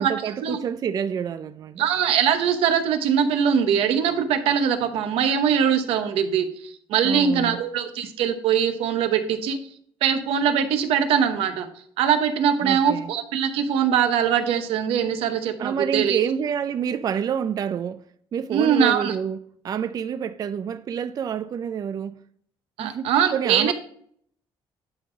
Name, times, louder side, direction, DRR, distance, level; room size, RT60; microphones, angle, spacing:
voice 1, 0.0-1.8 7.0-7.6 12.6-13.1 15.6-18.0 18.3-19.4 19.6-22.2 22.8-23.7, right 8 dB, 40° right, 0.4 m, -28 dB
voice 2, 1.8-9.6 10.0-11.7 12.0-16.2 18.5-19.1 22.8-23.7, right 8 dB, 85° right, 1.0 m, -22 dB
11.0 x 3.8 x 6.0 m
cardioid pair, 115°, 9 cm